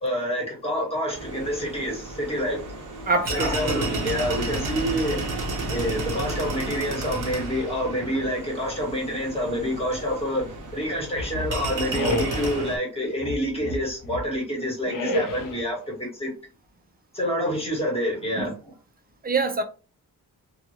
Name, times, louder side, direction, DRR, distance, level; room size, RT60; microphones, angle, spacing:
voice 1, 0.0-2.6 3.3-5.2 5.7-10.4 10.7-16.3 17.1-18.5, equal, 15° left, 1.3 m, -27 dB
sound 1, 1.1-12.8, right 2 dB, 55° right, 0.8 m, -32 dB
voice 2, 3.1-3.5 18.4-18.5 19.2-19.6, right 3 dB, 25° right, 0.4 m, -24 dB
sound 2, 11.2-12.6 13.2-14.3 14.9-15.7, left 1 dB, 60° left, 0.6 m, -30 dB
2.9 x 2.3 x 2.8 m
wide cardioid pair, 150°, 37 cm